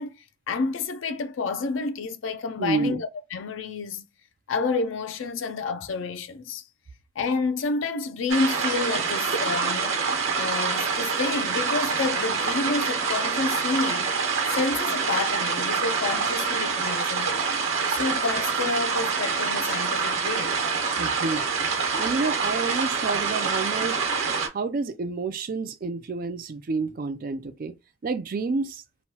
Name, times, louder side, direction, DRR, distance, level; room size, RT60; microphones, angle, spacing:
voice 1, 0.0-4.0 4.5-6.6 7.2-10.0 10.3-14.1 14.5-17.4 17.9-20.6, left 4 dB, 70° left, 0.4 m, -29 dB
voice 2, 2.6-3.0 20.9-21.4 22.0-24.0 24.5-27.7 28.0-28.8, right 4 dB, 45° right, 0.4 m, -29 dB
sound 1, 8.3-24.5, right 5 dB, 85° right, 1.0 m, -26 dB
3.1 x 2.2 x 2.8 m
head